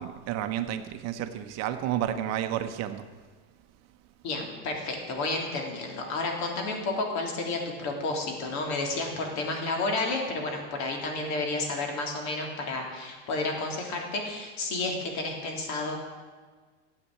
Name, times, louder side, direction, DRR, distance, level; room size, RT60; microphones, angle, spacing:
voice 1, 0.0-3.1, right 11 dB, 45° right, 8 dB, 1.1 m, -31 dB
voice 2, 4.2-16.0, left 2 dB, 50° left, 1 dB, 3.4 m, -31 dB
13.5 x 8.4 x 8.6 m, 1.5 s
supercardioid pair, 140°, 36 cm